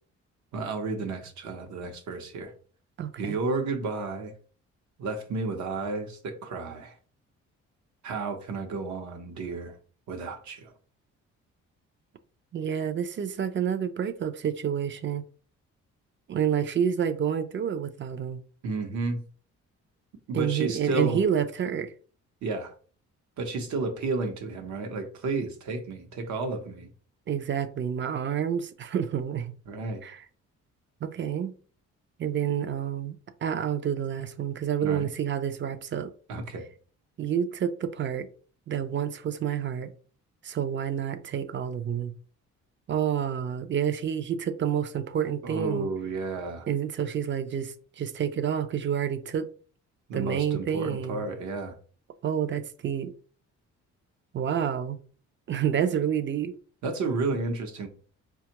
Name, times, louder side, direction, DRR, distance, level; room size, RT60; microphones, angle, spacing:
voice 1, 0.5-2.5 3.2-4.3 5.0-7.0 8.0-9.8 10.1-10.7 18.6-19.2 20.3-21.2 22.4-22.7 23.4-26.9 29.7-30.0 34.8-35.1 36.3-36.6 45.4-46.7 50.1-51.8 56.8-57.9, right 3 dB, 70° right, 0.8 m, -32 dB
voice 2, 3.0-3.4 12.5-15.2 16.3-18.4 20.3-21.9 27.3-29.5 30.0-30.2 31.0-31.5 32.2-36.1 37.2-38.3 38.7-39.9 40.4-42.1 42.9-45.9 46.7-49.5 50.1-51.3 52.2-53.1 54.3-55.0 55.5-56.6, right 8 dB, 40° right, 0.4 m, -29 dB
4.3 x 2.3 x 2.8 m
cardioid pair, 90°, 30 cm